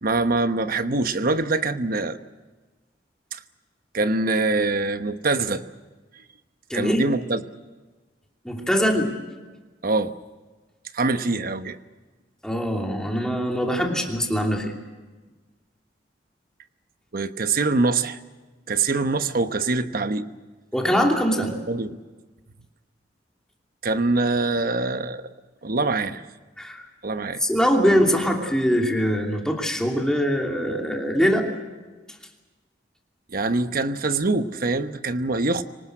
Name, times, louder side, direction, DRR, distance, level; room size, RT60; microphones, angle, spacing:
voice 1, 0.0-2.2 3.3-3.4 3.9-5.6 6.7-7.4 9.8-10.1 10.9-11.8 17.1-18.2 18.7-20.3 21.7-22.0 23.8-25.3 25.6-26.2 27.0-27.4 33.3-35.6, right 3 dB, 55° right, 10 dB, 1.1 m, -24 dB
voice 2, 6.7-7.0 8.4-9.1 12.4-14.7 20.7-21.6 26.6-26.8 27.4-31.5, equal, 5° left, 1 dB, 2.9 m, -22 dB
25.0 x 19.5 x 7.9 m, 1.3 s
head